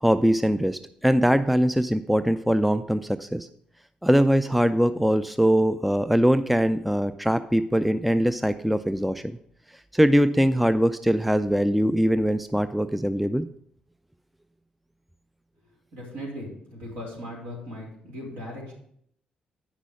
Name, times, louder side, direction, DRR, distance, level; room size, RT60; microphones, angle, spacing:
voice 1, 0.0-3.5 4.0-9.4 9.9-13.5, equal, ahead, 11 dB, 0.4 m, -22 dB
voice 2, 15.9-18.7, equal, 65° right, -2 dB, 3.6 m, -38 dB
9.2 x 6.1 x 5.3 m, 0.67 s
figure-of-eight pair, 40°, 4 cm